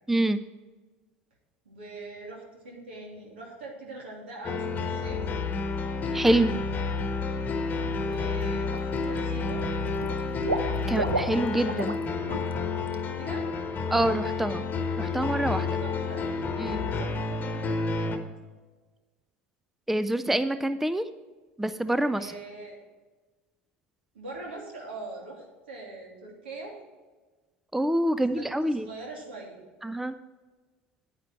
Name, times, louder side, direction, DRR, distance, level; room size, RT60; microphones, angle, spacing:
voice 1, 0.1-0.4 6.1-6.5 10.9-12.0 13.9-14.6 15.0-15.7 16.6-16.8 19.9-21.1 21.6-22.3 27.7-28.9 29.8-30.2, right 1 dB, 5° right, 12 dB, 0.4 m, -26 dB
voice 2, 1.6-5.3 7.9-9.7 12.9-13.5 15.8-16.3 16.7-18.2 22.1-22.8 24.1-26.7 28.1-29.7, right 2 dB, 70° right, -1 dB, 2.8 m, -42 dB
sound 1, 4.4-18.2, left 4 dB, 30° left, 1.3 m, -30 dB
Water / Liquid, 7.9-8.2 8.5-9.2 9.5-12.0 12.3-12.5 12.9-13.0, right 2 dB, 85° right, 0.7 m, -33 dB
9.9 x 9.3 x 4.5 m, 1.3 s
figure-of-eight pair, 75°, 6 cm